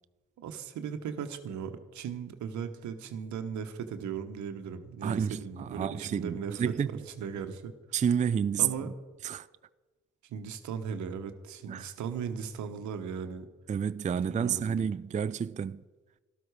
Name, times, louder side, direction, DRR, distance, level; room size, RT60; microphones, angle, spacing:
voice 1, 0.4-7.7 8.6-8.9 10.3-13.5 14.2-14.8, right 7 dB, 75° right, 1.2 m, -37 dB
voice 2, 5.0-7.0 7.9-8.9 9.2-9.5 11.7-11.9 13.7-15.8, right 7 dB, 25° right, 0.4 m, -30 dB
13.0 x 12.5 x 4.8 m
hypercardioid pair, 40°, 30 cm